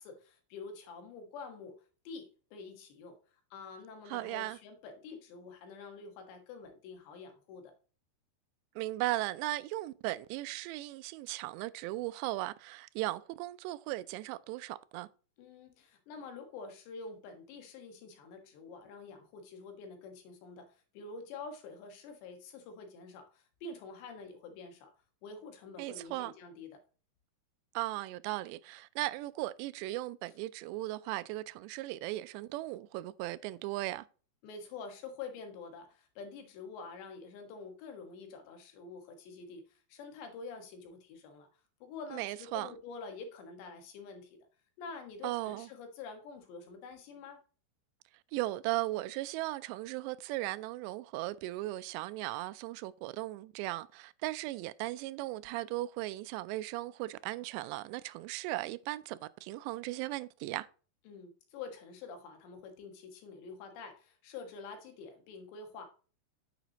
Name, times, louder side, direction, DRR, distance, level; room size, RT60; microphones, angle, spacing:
voice 1, 0.0-7.7 15.4-24.9 25.2-26.8 34.4-41.5 41.8-44.4 44.8-47.4 61.1-65.9, left 4 dB, 85° left, 3.8 m, -47 dB
voice 2, 4.1-4.6 8.8-15.1 25.8-26.3 27.7-34.1 42.1-42.7 45.2-45.7 48.3-60.7, right 17 dB, 90° right, 2.7 m, -37 dB
9.2 x 8.1 x 2.9 m
omnidirectional pair, 4.9 m